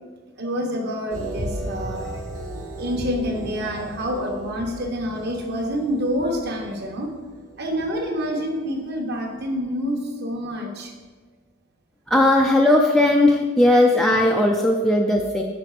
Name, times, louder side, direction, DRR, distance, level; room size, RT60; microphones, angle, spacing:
voice 1, 0.4-2.2 2.8-7.1 7.6-10.9, equal, 50° right, 2 dB, 1.0 m, -27 dB
sound 1, 1.1-9.0 9.4-9.5, right 1 dB, 75° right, 1.1 m, -36 dB
voice 2, 12.1-15.4, left 1 dB, ahead, 0 dB, 0.4 m, -17 dB
6.0 x 5.7 x 4.9 m, 1.4 s
head